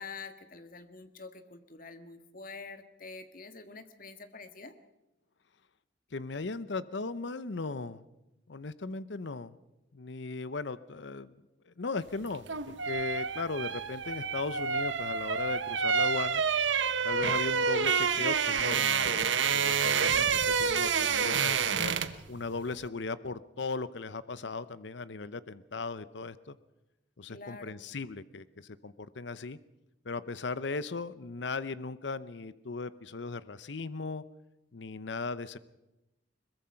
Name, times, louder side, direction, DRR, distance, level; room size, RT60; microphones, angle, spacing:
voice 1, 0.0-4.8 18.0-18.3 27.3-27.8, left 4 dB, 50° left, 9 dB, 1.6 m, -46 dB
voice 2, 6.1-8.0 8.5-9.6 9.9-11.3 11.7-16.4 17.0-19.2 19.5-22.0 22.3-26.6 27.2-29.6 30.0-34.2 34.7-35.6, left 3 dB, 65° left, 16 dB, 0.7 m, -37 dB
sound 1, 12.3-22.3 22.5-22.7, right 6 dB, 75° right, 1.1 m, -28 dB
22.0 x 21.0 x 5.8 m, 0.95 s
head